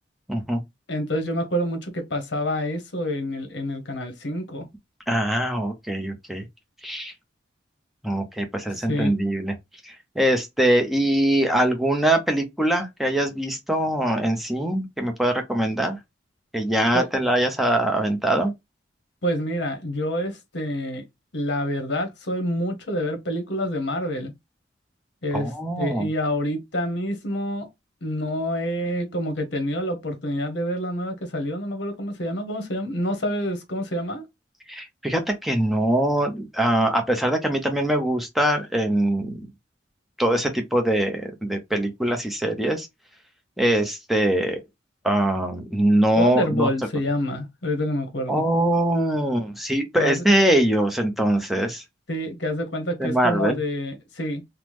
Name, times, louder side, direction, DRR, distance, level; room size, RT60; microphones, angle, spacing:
voice 1, 0.3-0.6 5.1-6.4 6.8-7.1 8.0-9.5 9.8-16.0 16.5-18.5 25.3-26.1 34.7-39.5 40.2-42.9 43.6-44.6 45.0-46.7 48.3-51.8 53.0-53.6, right 1 dB, ahead, 0.5 m, -22 dB
voice 2, 0.9-4.6 8.9-9.1 16.9-17.1 19.2-21.0 21.3-24.3 25.2-25.5 25.8-27.7 28.0-34.2 46.2-48.5 50.0-50.2 52.1-54.4, equal, 60° left, 0.9 m, -27 dB
3.4 x 2.0 x 2.9 m
head